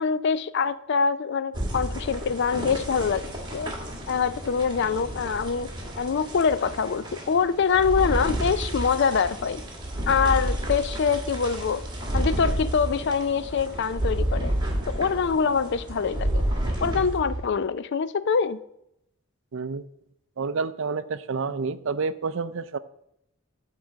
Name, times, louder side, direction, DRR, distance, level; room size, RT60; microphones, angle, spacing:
voice 1, 0.0-3.3 3.5-3.7 4.1-5.7 6.0-9.6 10.1-11.8 12.1-14.5 14.9-16.5 16.8-18.6, left 6 dB, 50° left, 0.4 m, -24 dB
sound 1, 1.5-17.4, right 1 dB, 20° right, 1.6 m, -30 dB
voice 2, 19.5-19.8 20.4-22.8, right 4 dB, 60° right, 0.4 m, -29 dB
9.5 x 3.8 x 7.2 m
head